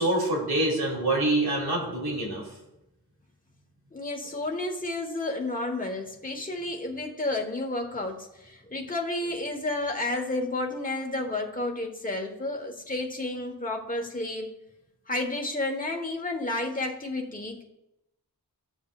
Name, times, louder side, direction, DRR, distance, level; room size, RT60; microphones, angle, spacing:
voice 1, 0.0-2.4, right 2 dB, 75° right, -2 dB, 3.0 m, -26 dB
voice 2, 3.9-14.5 15.1-17.6, left 2 dB, 20° left, 1 dB, 1.3 m, -31 dB
14.0 x 7.3 x 2.4 m, 0.88 s
wide cardioid pair, 65°, 38 cm